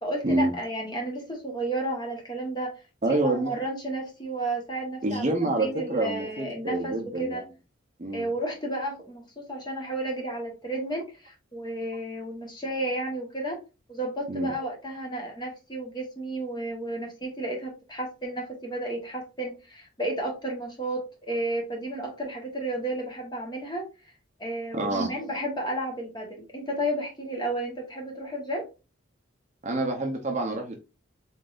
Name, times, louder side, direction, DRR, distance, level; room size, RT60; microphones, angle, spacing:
voice 1, 0.0-2.7 3.0-7.4 8.1-13.6 13.9-23.9 24.4-28.6, right 1 dB, 20° left, 0 dB, 1.3 m, -32 dB
voice 2, 3.0-3.6 5.0-7.4 8.0-8.3 14.3-14.5 24.7-25.1 29.6-30.7, right 2 dB, 35° right, 2 dB, 0.7 m, -27 dB
3.9 x 3.9 x 2.5 m, 0.30 s
head